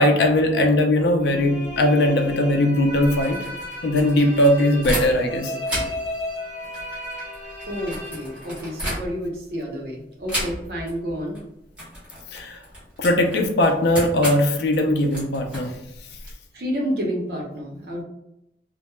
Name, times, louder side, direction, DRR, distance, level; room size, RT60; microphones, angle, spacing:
voice 1, 0.0-3.4 3.8-5.5 12.3-12.6 13.0-15.7, left 1 dB, 75° left, 4 dB, 0.4 m, -19 dB
sound 1, 1.2-8.9, left 1 dB, 35° left, 0.9 m, -35 dB
sound 2, 2.9-5.4 5.6-9.4 10.3-11.0 11.2-11.4 11.7-16.3, equal, 5° right, 0.8 m, -33 dB
voice 2, 7.7-11.4 16.5-18.0, equal, 65° right, -1 dB, 0.7 m, -29 dB
2.2 x 2.0 x 2.9 m, 0.83 s
head